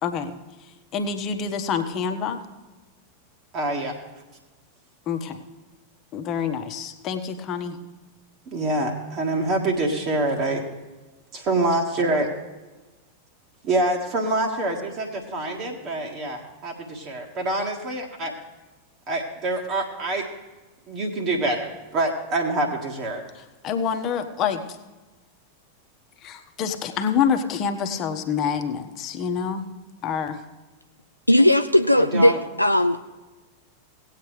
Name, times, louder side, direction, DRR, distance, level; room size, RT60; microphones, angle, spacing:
voice 1, 0.0-0.3 0.9-2.4 5.1-5.4 6.1-7.8 23.6-24.6 26.2-29.7 30.0-30.4, left 7 dB, 35° left, 6 dB, 1.1 m, -26 dB
voice 2, 3.5-4.0 8.5-10.7 11.3-12.3 13.6-18.3 19.1-20.3 20.9-23.3 32.0-32.4, right 2 dB, 35° right, 0 dB, 1.8 m, -26 dB
voice 3, 31.3-33.0, left 1 dB, 90° left, 7 dB, 0.4 m, -18 dB
18.5 x 8.4 x 3.3 m, 1.2 s
figure-of-eight pair, 90°, 0 cm